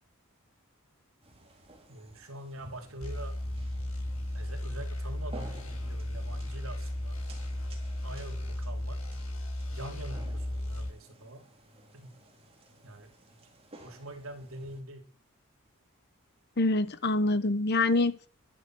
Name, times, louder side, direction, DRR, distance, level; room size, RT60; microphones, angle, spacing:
sound 1, 1.2-14.8, right 1 dB, 25° right, 3.2 m, -53 dB
voice 1, 1.9-3.4 4.3-7.2 8.0-9.0 9.7-11.4 11.9-12.1 12.8-13.4 13.8-15.1, right 1 dB, 70° right, 4 dB, 3.0 m, -44 dB
sound 2, 3.0-10.9, left 1 dB, 70° left, 6.8 m, -35 dB
voice 2, 16.6-18.3, left 2 dB, 50° left, 14 dB, 1.1 m, -26 dB
12.5 x 11.0 x 6.2 m, 0.41 s
head